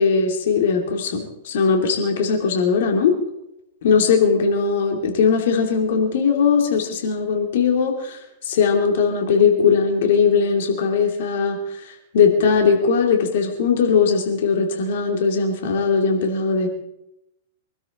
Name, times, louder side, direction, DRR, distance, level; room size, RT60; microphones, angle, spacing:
voice 1, 0.0-3.2 3.8-8.2 8.5-11.6 12.1-16.7, left 5 dB, 55° left, 3 dB, 2.9 m, -19 dB
24.5 x 12.5 x 4.0 m, 0.83 s
figure-of-eight pair, 100°, 0 cm